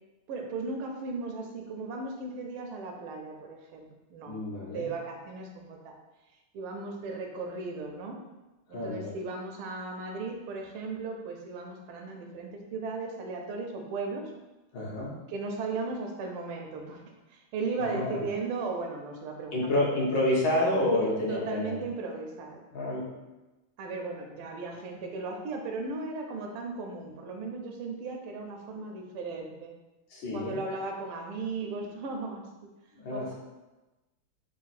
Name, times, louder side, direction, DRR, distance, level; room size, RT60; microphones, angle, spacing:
voice 1, 0.3-5.9 6.5-8.2 8.7-14.2 15.3-19.9 20.9-22.6 23.8-29.7 30.3-32.4 33.1-33.3, right 3 dB, 85° right, 2 dB, 1.5 m, -36 dB
voice 2, 4.3-4.9 8.7-9.1 14.7-15.1 17.8-18.2 19.5-21.8 22.7-23.0 30.1-30.6 33.0-33.3, left 1 dB, 65° left, -4 dB, 1.4 m, -29 dB
4.0 x 2.2 x 4.1 m, 1.1 s
omnidirectional pair, 2.3 m